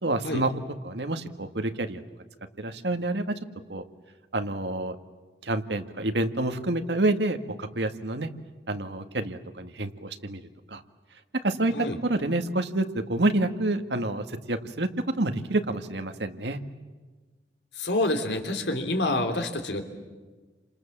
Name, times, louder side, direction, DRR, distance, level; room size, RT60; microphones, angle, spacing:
voice 1, 0.0-0.5 0.8-2.0 2.6-3.2 3.7-3.8 4.3-5.0 5.4-8.3 8.7-10.4 10.7-10.8 11.4-14.9 15.2-16.6, right 2 dB, 80° right, 7 dB, 1.9 m, -28 dB
voice 2, 17.7-19.8, left 2 dB, 80° left, 6 dB, 3.3 m, -27 dB
29.0 x 27.0 x 7.4 m, 1.3 s
head